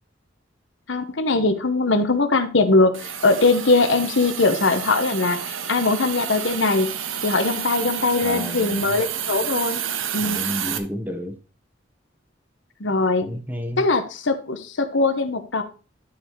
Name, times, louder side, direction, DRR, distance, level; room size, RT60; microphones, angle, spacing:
voice 1, 0.9-6.9 7.2-9.8 10.1-10.4 12.8-13.3 13.8-15.6, left 3 dB, 70° left, 8 dB, 1.2 m, -21 dB
Hiss, 2.9-10.8, right 9 dB, 90° right, 0.9 m, -30 dB
voice 2, 8.2-9.0 10.2-11.4 13.2-13.9, equal, 10° right, 6 dB, 1.2 m, -31 dB
12.0 x 4.2 x 4.7 m, 0.35 s
head